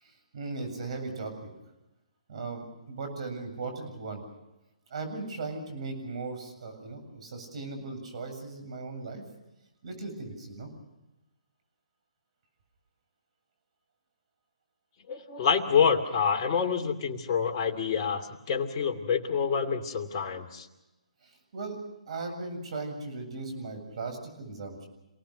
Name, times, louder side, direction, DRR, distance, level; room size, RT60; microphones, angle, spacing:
voice 1, 0.0-1.5 2.3-4.2 4.9-9.2 9.8-10.7 21.2-21.8 22.1-24.9, right 3 dB, 55° right, 6 dB, 7.8 m, -38 dB
voice 2, 15.1-20.7, left 6 dB, 35° left, 3 dB, 2.7 m, -27 dB
28.0 x 18.5 x 6.6 m, 0.99 s
figure-of-eight pair, 140°, 4 cm